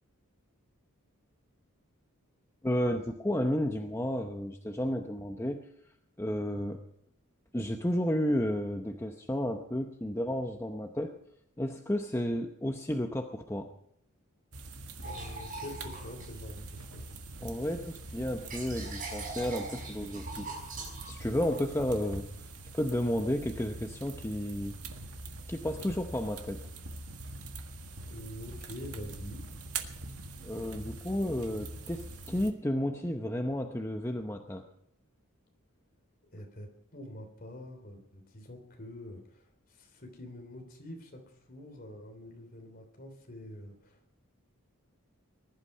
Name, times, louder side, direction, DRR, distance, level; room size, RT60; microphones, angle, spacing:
voice 1, 2.6-5.6 6.2-6.8 7.5-11.1 11.6-13.7 17.4-20.5 20.8-22.5 22.7-24.8 25.5-26.6 30.4-34.6, left 1 dB, 10° left, 4 dB, 0.8 m, -32 dB
sound 1, 14.5-32.5, right 2 dB, 80° right, 1.6 m, -43 dB
voice 2, 15.0-17.1 28.1-29.5 36.2-44.2, left 1 dB, 40° left, 4 dB, 3.3 m, -46 dB
sound 2, 15.0-17.1 17.5-22.8, right 3 dB, 40° right, 5.3 m, -44 dB
20.5 x 11.5 x 5.5 m, 0.72 s
head